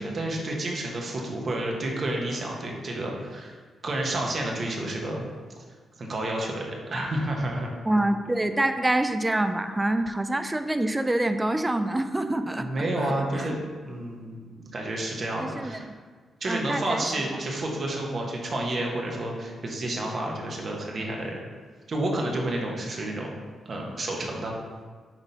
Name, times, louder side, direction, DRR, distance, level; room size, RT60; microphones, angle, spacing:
voice 1, 0.0-3.6 3.8-5.3 6.0-7.8 12.6-15.8 16.4-21.4 21.9-23.3 23.6-24.5, right 1 dB, 55° right, 0 dB, 1.2 m, -30 dB
voice 2, 7.9-13.6 15.4-16.0 16.5-17.0 17.3-17.4, right 1 dB, 20° right, 8 dB, 0.5 m, -26 dB
5.9 x 3.9 x 4.2 m, 1.5 s
hypercardioid pair, 45°, 0 cm